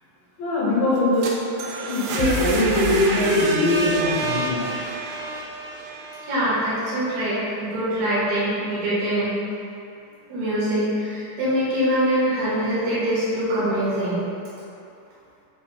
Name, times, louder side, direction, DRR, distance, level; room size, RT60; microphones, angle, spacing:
voice 1, 0.4-1.3 1.8-4.7, left 1 dB, 75° left, -8 dB, 3.8 m, -21 dB
sound 1, 1.0-6.8, right 2 dB, 80° right, 2.8 m, -28 dB
voice 2, 6.2-9.4 10.3-14.3, equal, 65° right, -10 dB, 3.2 m, -23 dB
8.2 x 5.3 x 2.2 m, 2.7 s
omnidirectional pair, 5.3 m